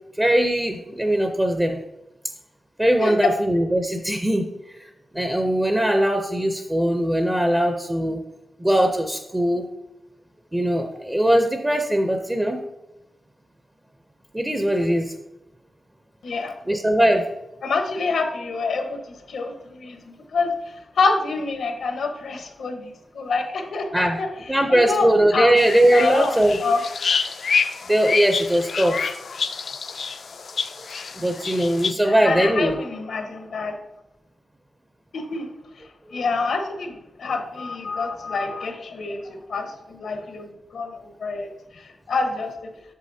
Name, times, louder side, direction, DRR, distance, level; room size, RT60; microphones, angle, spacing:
voice 1, 0.2-1.8 2.8-4.5 4.8-8.2 8.6-9.7 10.5-12.6 14.3-15.1 16.6-17.3 23.9-24.2 24.5-26.6 27.9-29.0 31.2-32.8 36.1-36.2, right 1 dB, 10° right, 4 dB, 0.5 m, -20 dB
voice 2, 16.2-16.6 17.6-19.0 19.3-20.5 21.0-24.3 24.7-25.5 25.9-26.8 32.0-33.8 35.1-35.5 36.1-40.9 41.2-41.5 42.1-42.5, left 4 dB, 85° left, 4 dB, 1.1 m, -26 dB
sound 1, 25.6-31.9, left 5 dB, 60° left, 0.4 m, -27 dB
8.3 x 7.0 x 2.7 m, 0.95 s
wide cardioid pair, 150°, 0 cm